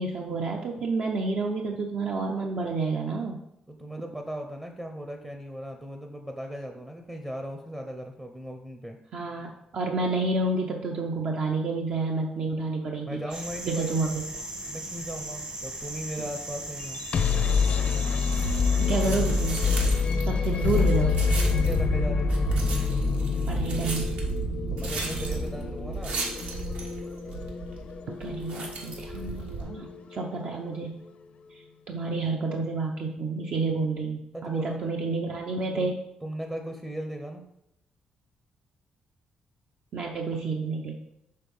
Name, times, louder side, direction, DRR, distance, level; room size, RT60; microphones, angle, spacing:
voice 1, 0.0-3.4 9.1-13.2 13.7-14.2 18.8-19.6 20.2-21.3 23.5-24.3 28.2-31.0 31.5-36.0 39.9-41.0, right 3 dB, 55° right, 1 dB, 0.7 m, -29 dB
voice 2, 3.7-9.0 13.0-13.9 14.7-17.0 20.7-20.9 21.5-22.4 24.7-26.2 34.3-35.0 35.7-35.9 36.2-37.5, right 1 dB, 10° right, 4 dB, 0.6 m, -37 dB
sound 1, 13.3-19.9, right 1 dB, 40° right, 1.3 m, -38 dB
sound 2, 16.8-30.7, left 6 dB, 55° left, 0.5 m, -28 dB
sound 3, 18.3-29.7, right 4 dB, 75° right, 1.4 m, -32 dB
6.6 x 3.7 x 5.3 m, 0.81 s
cardioid pair, 130°, 2 cm